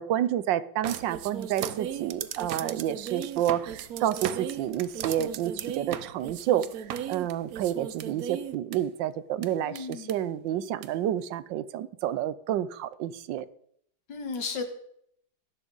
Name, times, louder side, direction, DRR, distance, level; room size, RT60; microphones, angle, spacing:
voice 1, 0.0-13.5, right 11 dB, 85° right, 17 dB, 1.4 m, -29 dB
sound 1, 0.8-8.8 9.4-9.5 9.7-10.1 10.8-10.9, right 10 dB, 65° right, 1.0 m, -36 dB
voice 2, 9.6-10.1 14.1-14.6, left 5 dB, 75° left, 6 dB, 2.2 m, -34 dB
17.0 x 10.5 x 4.0 m, 0.70 s
omnidirectional pair, 2.0 m